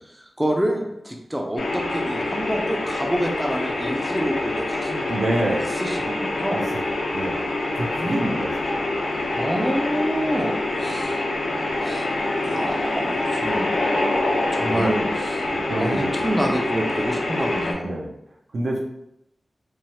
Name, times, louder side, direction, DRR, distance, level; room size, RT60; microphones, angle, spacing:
voice 1, 0.2-5.2 5.8-6.7 8.0-8.3 9.3-11.2 11.8-12.1 12.4-13.7 14.5-15.5 15.8-17.9, equal, 10° right, 1 dB, 0.3 m, -27 dB
sound 1, 1.6-17.7, left 2 dB, 80° left, 0.4 m, -25 dB
voice 2, 5.1-5.7 6.5-6.6 7.1-7.4 7.7-8.9 14.7-14.9 15.5-16.4 17.8-18.1 18.5-18.8, right 1 dB, 70° right, -1 dB, 0.5 m, -27 dB
3.1 x 2.1 x 2.7 m, 0.81 s
wide cardioid pair, 110°, 0 cm